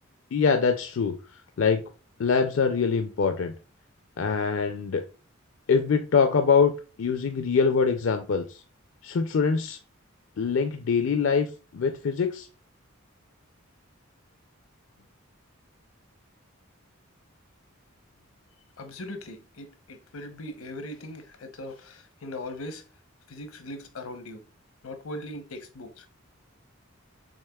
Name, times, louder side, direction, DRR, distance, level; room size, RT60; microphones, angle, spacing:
voice 1, 0.3-1.1 1.6-1.8 2.2-3.5 4.2-5.0 5.7-6.7 7.0-8.6 9.0-9.8 10.4-11.5 11.7-12.5, left 5 dB, 60° left, 0.4 m, -23 dB
voice 2, 18.8-22.8 23.3-24.5 24.8-26.1, left 1 dB, 85° left, 0.9 m, -39 dB
6.5 x 3.5 x 2.3 m
head